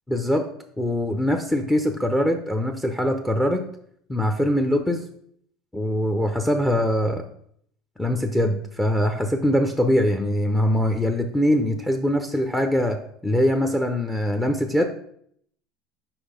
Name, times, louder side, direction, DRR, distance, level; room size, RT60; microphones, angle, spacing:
voice 1, 0.1-0.5 0.8-3.6 4.1-5.0 5.7-7.2 8.0-14.8, left 1 dB, 10° left, 5 dB, 0.6 m, -22 dB
4.8 x 4.4 x 5.1 m, 0.66 s
supercardioid pair, 95°, 0 cm